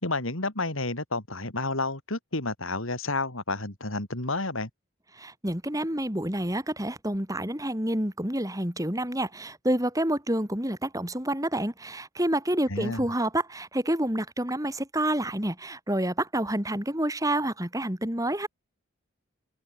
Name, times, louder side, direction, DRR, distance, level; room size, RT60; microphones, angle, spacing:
voice 1, 0.0-4.7 12.7-13.1, left 2 dB, 70° left, 4.3 m, -30 dB
voice 2, 5.1-18.5, right 1 dB, 15° right, 3.7 m, -28 dB
open air
head